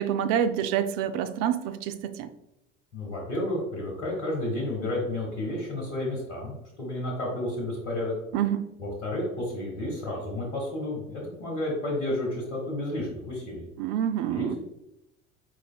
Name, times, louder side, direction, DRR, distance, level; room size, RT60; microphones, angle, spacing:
voice 1, 0.0-2.3 8.3-8.7 13.8-14.6, right 9 dB, 50° right, 10 dB, 0.5 m, -27 dB
voice 2, 2.9-8.1 8.8-13.6 14.3-14.6, left 1 dB, 80° left, -3 dB, 1.4 m, -31 dB
4.7 x 4.7 x 2.3 m, 0.90 s
figure-of-eight pair, 65°, 35 cm